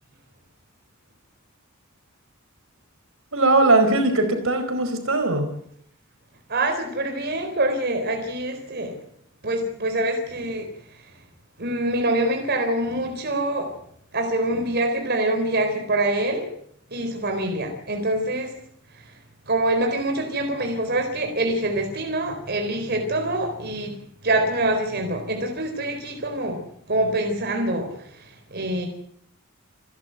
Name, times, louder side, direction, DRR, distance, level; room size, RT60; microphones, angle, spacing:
voice 1, 3.3-5.5, right 2 dB, 70° right, 7 dB, 4.7 m, -19 dB
voice 2, 6.5-9.0 9.4-10.7 11.6-13.7 14.1-16.5 16.9-18.5 18.9-19.1 19.5-23.9 24.2-26.6 26.9-28.9, right 1 dB, 50° right, 4 dB, 4.1 m, -25 dB
29.0 x 12.5 x 8.1 m, 0.69 s
head